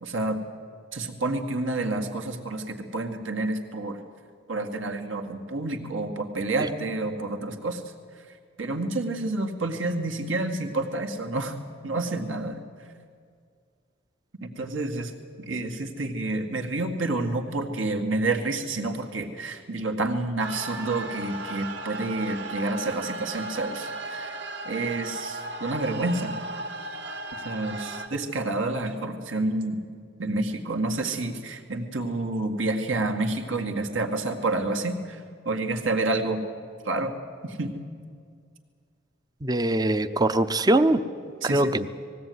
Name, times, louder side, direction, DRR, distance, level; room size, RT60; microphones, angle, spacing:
voice 1, 0.0-0.4 0.9-4.0 4.5-11.6 11.8-12.6 14.4-15.1 15.4-24.4 24.6-26.4 27.4-29.8 30.2-36.4 36.8-37.1 37.4-37.7 41.4-41.7, right 2 dB, 75° right, 3 dB, 2.1 m, -29 dB
sound 1, 20.4-28.1, right 2 dB, 60° right, 1.7 m, -36 dB
voice 2, 39.4-41.0 41.4-41.9, right 1 dB, 20° right, 11 dB, 0.6 m, -22 dB
20.0 x 16.5 x 9.6 m, 2.2 s
head